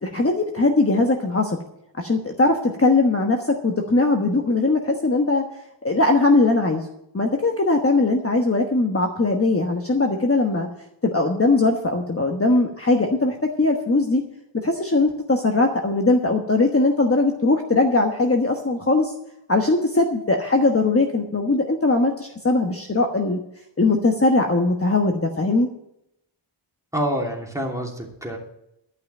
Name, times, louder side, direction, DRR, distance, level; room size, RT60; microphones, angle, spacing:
voice 1, 0.0-1.6 2.0-3.4 3.6-5.4 5.8-6.8 7.1-10.7 11.0-14.2 14.6-19.1 19.5-23.4 23.8-25.7, left 2 dB, 25° left, 2 dB, 1.2 m, -20 dB
voice 2, 26.9-28.4, equal, 5° right, -1 dB, 2.9 m, -27 dB
12.0 x 5.8 x 8.9 m, 0.78 s
wide cardioid pair, 95°, 50 cm